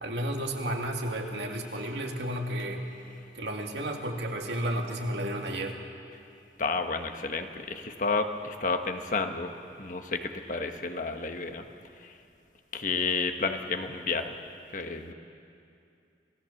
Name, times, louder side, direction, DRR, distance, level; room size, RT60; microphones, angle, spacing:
voice 1, 0.0-2.9 3.3-5.8, right 1 dB, 80° right, 2 dB, 2.2 m, -32 dB
voice 2, 6.6-9.5 9.8-11.6 12.0-12.2 12.7-14.4 14.7-15.1, left 4 dB, 45° left, 6 dB, 1.3 m, -31 dB
27.0 x 17.0 x 7.2 m, 2.5 s
head